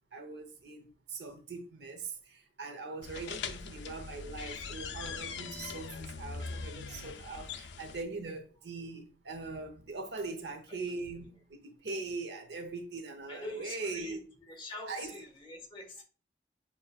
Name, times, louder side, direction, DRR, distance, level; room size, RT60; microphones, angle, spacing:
voice 1, 0.1-14.2 14.9-15.1, right 3 dB, 75° right, 0.9 m, -41 dB
sound 1, 3.0-8.0, left 5 dB, 80° left, 0.5 m, -41 dB
voice 2, 3.1-3.7 10.7-10.8 11.2-11.3 13.3-16.0, left 2 dB, 30° left, 1.3 m, -46 dB
7.0 x 3.1 x 2.3 m
head